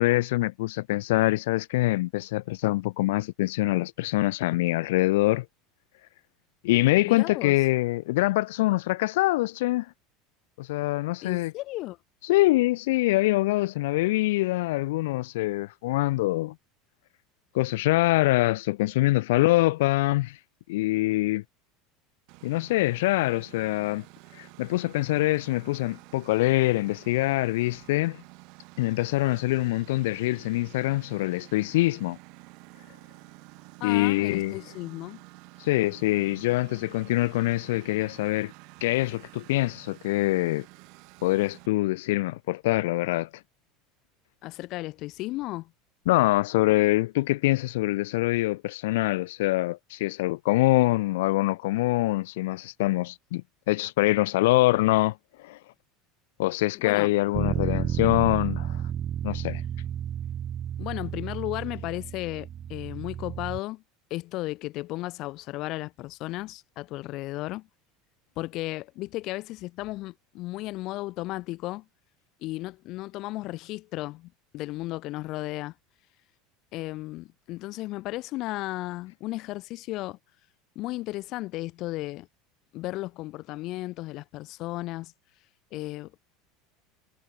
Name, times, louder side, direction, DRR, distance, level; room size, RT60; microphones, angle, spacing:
voice 1, 0.0-5.5 6.6-9.9 10.6-11.5 12.2-16.5 17.5-20.4 20.7-21.4 22.4-24.0 24.3-28.2 28.8-32.2 33.8-34.6 35.6-38.5 38.8-40.6 41.2-43.3 46.1-55.6 56.4-58.8 59.2-59.6, left 18 dB, 85° left, 4.3 m, -24 dB
voice 2, 7.0-7.5 11.2-12.0 33.8-35.2 44.4-45.7 56.7-57.1 60.8-63.8 64.1-67.7 68.4-71.8 72.4-75.7 76.7-80.2 80.7-82.3 82.7-85.1 85.7-86.1, left 18 dB, 45° left, 6.3 m, -34 dB
Engine, 22.3-41.7, right 30 dB, 55° right, 8.0 m, -50 dB
Bass guitar, 57.3-63.6, right 10 dB, 30° right, 1.6 m, -31 dB
supercardioid pair, 160°, 0 cm